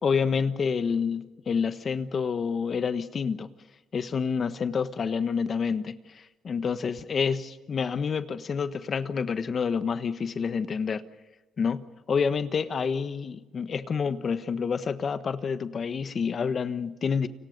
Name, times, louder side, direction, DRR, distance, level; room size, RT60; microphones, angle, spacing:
voice 1, 0.0-3.5 3.9-11.0 11.6-17.3, left 6 dB, 45° left, 1.2 m, -28 dB
29.0 x 25.5 x 5.3 m
cardioid pair, 90°, 0 cm